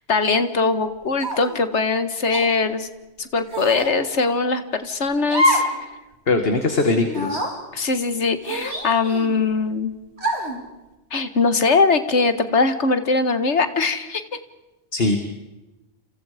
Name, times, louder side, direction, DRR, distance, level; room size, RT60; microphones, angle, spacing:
voice 1, 0.1-2.9 3.2-5.6 7.7-9.9 11.1-14.2, left 4 dB, 75° left, 10 dB, 1.9 m, -21 dB
sound 1, 1.2-1.6 2.3-2.5 3.5-3.9 5.3-5.8 6.1-6.2 7.1-7.5 8.4-9.3 10.2-10.6, equal, 70° right, 4.3 m, -24 dB
voice 2, 6.3-7.4 14.9-15.2, left 3 dB, 55° left, 6 dB, 2.1 m, -20 dB
29.0 x 28.5 x 5.1 m, 1.0 s
omnidirectional pair, 1.2 m